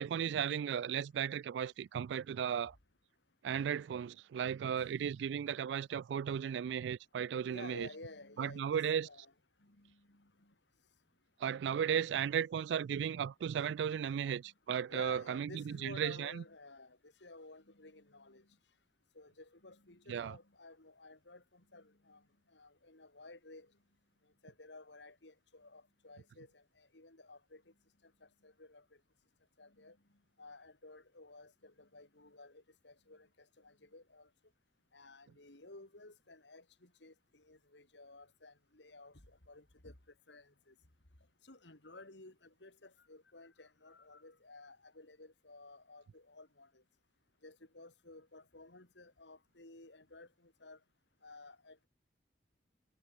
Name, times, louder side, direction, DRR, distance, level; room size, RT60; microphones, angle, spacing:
voice 1, 0.0-2.8 3.4-7.9 8.4-9.1 11.4-16.4 20.1-20.4, right 8 dB, 75° right, 0.3 m, -35 dB
voice 2, 7.4-9.3 9.6-10.5 11.6-12.2 13.6-14.4 14.9-18.5 19.1-22.2 22.5-23.7 24.4-27.6 28.2-28.8 29.6-30.0 30.4-34.3 34.9-39.9 40.3-40.7 41.4-46.8 47.4-50.8 51.2-51.9, left 2 dB, 80° left, 3.1 m, -55 dB
head